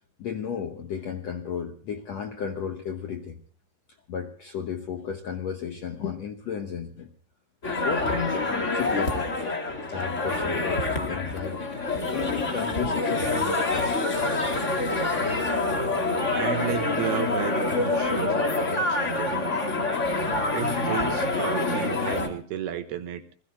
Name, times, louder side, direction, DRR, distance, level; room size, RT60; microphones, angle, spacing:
voice 1, 0.2-3.4 4.1-7.1 7.8-9.6 9.9-11.7 12.1-14.2 16.1-16.2, left 7 dB, 65° left, 5 dB, 1.7 m, -33 dB
sound 1, 7.6-22.3, left 2 dB, 20° left, 2.2 m, -26 dB
voice 2, 16.3-19.6 20.5-23.2, right 10 dB, 75° right, 9 dB, 3.2 m, -33 dB
28.0 x 20.5 x 2.2 m, 0.44 s
omnidirectional pair, 4.7 m